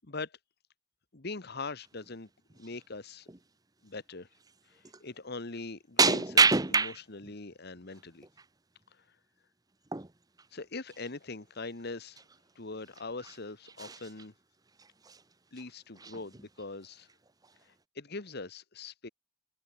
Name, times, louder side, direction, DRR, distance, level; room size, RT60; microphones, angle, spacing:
voice 1, 0.0-0.4 1.1-2.3 2.5-3.3 3.8-4.3 4.7-8.3 10.5-12.2 12.5-14.3 15.5-17.1 17.9-19.1, left 3 dB, 50° left, 1.4 m, -42 dB
sound 1, 1.8-2.1 2.5-2.7 3.3-3.4 4.4-4.5 4.8-5.0 6.0-7.3 7.8-8.4 9.9-10.1 10.4-10.5 10.9-11.1 11.8-11.9 12.2-12.4 12.9-13.4 13.6-14.3 14.8-15.2 15.6-15.7 15.9-16.7 17.1-17.5, right 4 dB, 20° right, 0.9 m, -29 dB
head